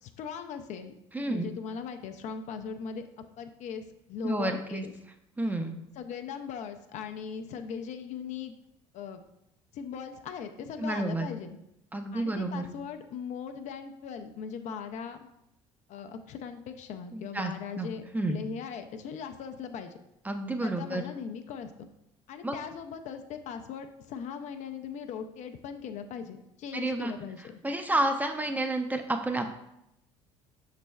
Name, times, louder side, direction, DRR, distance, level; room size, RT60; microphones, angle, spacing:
voice 1, 0.0-0.9 1.3-3.0 3.4-4.9 6.0-8.5 8.9-9.2 9.7-11.6 12.1-15.3 15.9-20.0 20.6-21.9 22.3-27.4, left 6 dB, 50° left, 7 dB, 0.4 m, -39 dB
voice 2, 1.1-1.5 4.2-4.8 5.4-5.8 10.8-11.3 11.9-12.7 17.1-17.9 18.1-18.4 20.3-21.0 22.4-22.5 26.7-27.1 27.6-29.5, right 2 dB, 10° right, 5 dB, 0.4 m, -30 dB
5.9 x 3.2 x 2.2 m, 0.83 s
hypercardioid pair, 65°, 16 cm